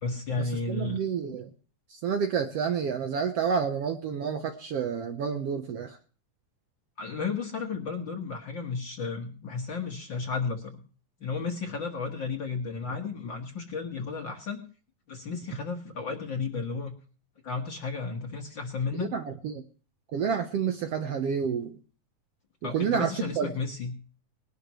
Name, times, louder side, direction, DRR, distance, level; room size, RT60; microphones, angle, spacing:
voice 1, 0.0-1.3 7.0-10.8 11.2-14.6 15.1-16.9 17.4-19.1 22.6-24.0, left 4 dB, 45° left, 2 dB, 1.7 m, -33 dB
voice 2, 0.7-1.5 1.9-6.0 19.1-19.6 20.1-21.8 22.7-23.5, right 7 dB, 65° right, 6 dB, 1.7 m, -29 dB
20.5 x 12.0 x 3.1 m, 0.39 s
omnidirectional pair, 3.6 m